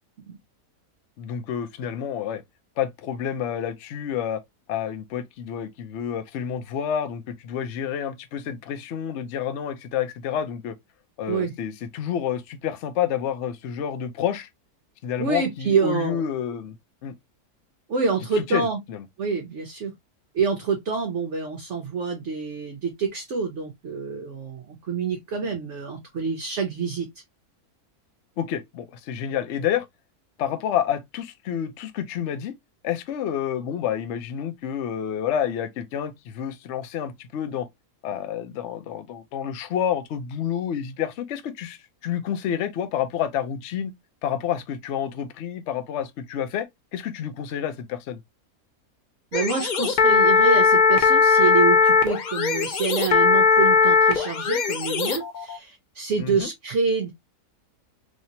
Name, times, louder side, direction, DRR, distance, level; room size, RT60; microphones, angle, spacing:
voice 1, 1.2-2.4 2.8-4.4 4.7-10.7 11.2-14.5 15.0-16.8 17.0-17.1 18.3-19.0 28.4-29.9 30.4-32.5 32.8-37.7 38.0-43.9 44.2-46.7 46.9-48.2 56.2-56.5, left 9 dB, 60° left, 0.8 m, -29 dB
voice 2, 15.2-16.3 17.9-18.8 19.2-19.9 20.3-27.1 49.3-57.1, right 5 dB, 60° right, 0.9 m, -27 dB
sound 1, 49.3-55.6, left 5 dB, 85° left, 0.4 m, -19 dB
3.2 x 2.8 x 2.7 m
omnidirectional pair, 1.6 m